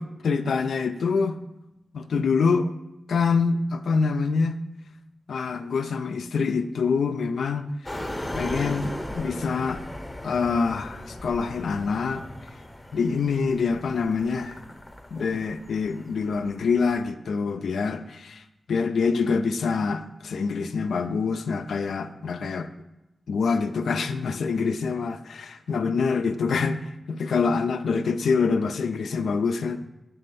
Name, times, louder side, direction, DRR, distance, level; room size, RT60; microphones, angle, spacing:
voice 1, 0.0-1.4 1.9-2.7 3.1-4.6 5.3-7.7 8.4-9.8 10.2-12.2 12.9-14.6 15.1-18.4 18.7-22.7 23.3-29.8, left 5 dB, 90° left, 0.3 m, -25 dB
sound 1, 7.9-17.1, left 1 dB, 15° left, 0.7 m, -37 dB
7.3 x 3.3 x 5.4 m
wide cardioid pair, 85°, 0 cm